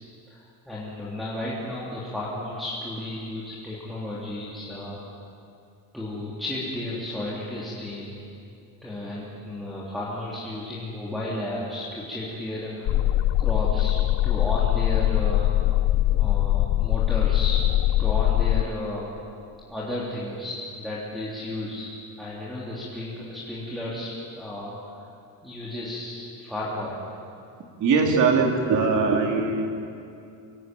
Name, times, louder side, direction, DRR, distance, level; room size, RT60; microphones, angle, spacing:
voice 1, 0.3-5.0 5.9-8.3 8.8-13.1 13.4-15.5 16.2-17.6 18.0-19.1 19.7-21.9 22.2-25.1 25.4-27.0, left 1 dB, ahead, -8 dB, 3.3 m, -33 dB
sound 1, 12.9-18.6, left 14 dB, 45° left, 0.5 m, -22 dB
voice 2, 27.8-29.7, right 4 dB, 45° right, 2 dB, 3.3 m, -21 dB
25.0 x 17.0 x 9.3 m, 2.5 s
cardioid pair, 175°, 40 cm